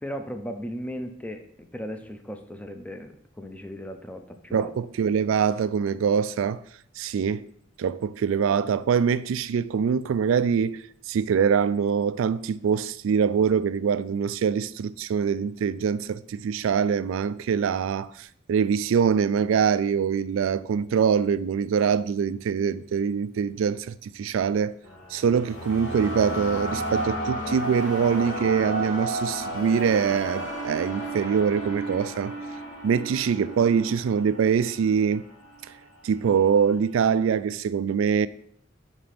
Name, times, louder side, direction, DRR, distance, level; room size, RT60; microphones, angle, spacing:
voice 1, 0.0-4.7, equal, 5° left, 0.5 m, -37 dB
voice 2, 4.5-6.6 7.0-7.5 7.8-24.7 25.1-32.4 32.8-35.3 36.0-38.3, right 7 dB, 80° right, 0.3 m, -24 dB
sound 1, 24.8-35.1, right 1 dB, 60° left, 1.6 m, -32 dB
5.1 x 4.9 x 5.8 m
head